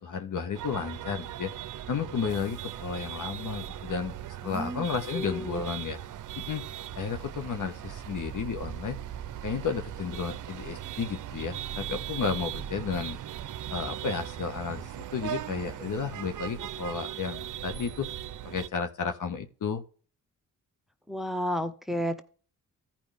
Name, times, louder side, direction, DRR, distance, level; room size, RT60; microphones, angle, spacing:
voice 1, 0.0-1.5 1.9-4.1 4.4-6.0 6.4-6.6 7.0-9.0 9.4-13.2 13.7-18.1 18.4-19.8, left 6 dB, 60° left, 7 dB, 1.5 m, -32 dB
sound 1, 0.5-18.7, right 11 dB, 60° right, 0.7 m, -39 dB
voice 2, 4.4-4.9 5.1-5.6 21.1-22.2, equal, ahead, 10 dB, 1.1 m, -32 dB
14.5 x 5.3 x 3.5 m, 0.40 s
supercardioid pair, 55°, 35 cm